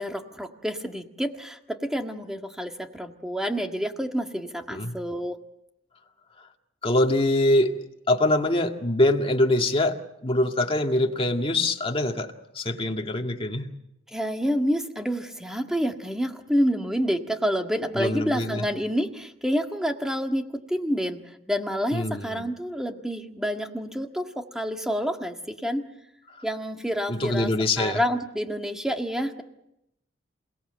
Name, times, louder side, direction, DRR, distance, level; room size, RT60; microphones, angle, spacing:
voice 1, 0.0-5.4 14.1-21.2 21.5-25.8 26.4-27.5 27.8-29.4, equal, 5° right, 4 dB, 1.7 m, -28 dB
voice 2, 6.8-7.8 8.1-13.7 17.9-18.6 21.9-22.4 27.1-28.0, left 1 dB, 30° left, 3 dB, 1.9 m, -24 dB
28.0 x 18.0 x 7.9 m, 0.82 s
head